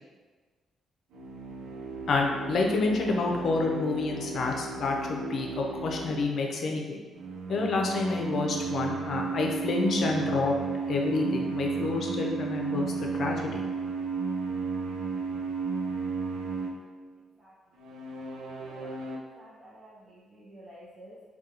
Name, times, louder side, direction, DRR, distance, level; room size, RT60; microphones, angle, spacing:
sound 1, 1.1-6.4 7.1-17.0 17.8-19.2, right 4 dB, 85° right, 0.4 m, -34 dB
voice 1, 2.1-7.0 7.5-10.5 10.9-12.9 13.2-13.6, left 3 dB, 60° left, 1 dB, 0.5 m, -28 dB
voice 2, 18.3-21.2, equal, 35° right, -6 dB, 0.6 m, -51 dB
3.6 x 2.3 x 2.8 m, 1.4 s
cardioid pair, 80°, 0 cm